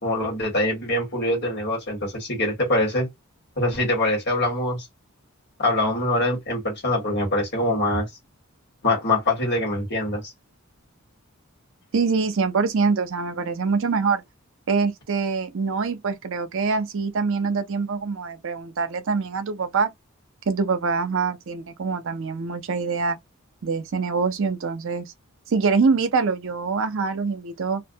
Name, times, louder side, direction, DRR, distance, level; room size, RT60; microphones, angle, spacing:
voice 1, 0.0-3.1 3.6-4.9 5.6-8.1 8.8-10.3, left 1 dB, 50° left, 1.4 m, -24 dB
voice 2, 11.9-14.2 14.7-19.9 20.5-23.2 23.6-25.0 25.5-27.8, right 4 dB, 60° right, 0.6 m, -24 dB
2.5 x 2.2 x 2.5 m
head